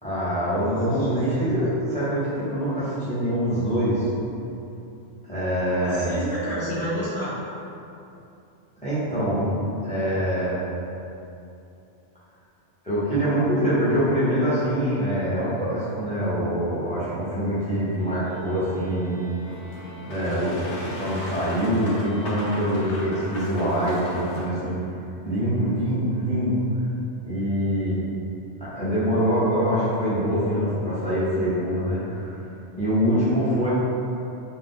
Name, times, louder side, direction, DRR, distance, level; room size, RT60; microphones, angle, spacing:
voice 1, 0.0-4.1 5.3-6.2 8.8-9.5 9.8-10.6 12.8-19.2 20.1-24.8 25.2-26.9 27.2-28.0 28.6-32.4 32.8-33.7, equal, 5° left, -12 dB, 0.8 m, -24 dB
voice 2, 0.6-1.4 5.8-7.3, equal, 55° left, -11 dB, 1.2 m, -31 dB
sound 1, 17.9-23.6, left 1 dB, 60° right, 0.7 m, -47 dB
Boat Water vehicle, 19.4-24.5, left 1 dB, 80° left, 1.0 m, -36 dB
2.6 x 2.4 x 3.6 m, 2.7 s
omnidirectional pair, 1.2 m